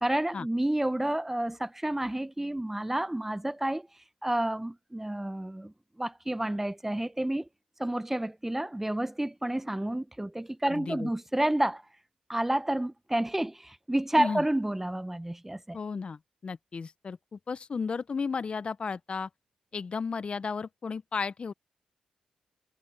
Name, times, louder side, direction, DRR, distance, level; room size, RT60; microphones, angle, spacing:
voice 1, 0.0-3.9 4.2-5.7 6.0-7.5 7.8-11.8 12.3-15.8, right 1 dB, 10° right, 1.0 m, -30 dB
voice 2, 10.7-11.1 14.2-14.4 15.7-19.3 19.7-21.5, left 5 dB, 50° left, 0.8 m, -34 dB
supercardioid pair, 45°, 2 cm